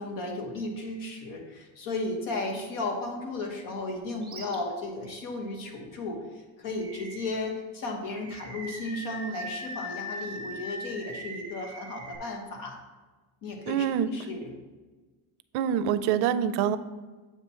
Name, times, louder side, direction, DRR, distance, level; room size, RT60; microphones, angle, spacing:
voice 1, 0.0-12.8 13.4-14.5, left 2 dB, 55° left, 2 dB, 1.3 m, -34 dB
Animal, 4.2-4.6 5.0-5.2 6.8-7.5 8.2-12.2, equal, 10° right, 1.1 m, -40 dB
voice 2, 13.7-14.1 15.5-16.8, right 9 dB, 70° right, 12 dB, 0.5 m, -25 dB
7.9 x 3.0 x 5.5 m, 1.3 s
cardioid pair, 145°, 40 cm